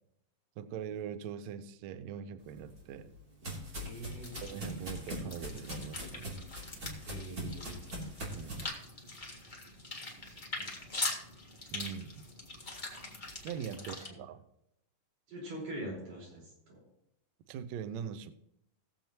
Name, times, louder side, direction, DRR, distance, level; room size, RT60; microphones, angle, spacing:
voice 1, 0.6-3.1 4.4-6.3 8.3-8.7 11.7-12.2 13.4-14.4 17.5-18.3, right 8 dB, 90° right, 10 dB, 1.6 m, -42 dB
sound 1, 2.5-8.6, equal, 30° right, 2.9 m, -42 dB
voice 2, 3.8-4.3 7.1-7.8 10.2-10.7 13.7-14.2 15.3-16.8, right 1 dB, 65° right, -4 dB, 6.4 m, -44 dB
sound 2, 4.1-14.1, left 2 dB, 30° left, 0.8 m, -43 dB
19.5 x 7.4 x 3.0 m, 0.80 s
omnidirectional pair, 4.0 m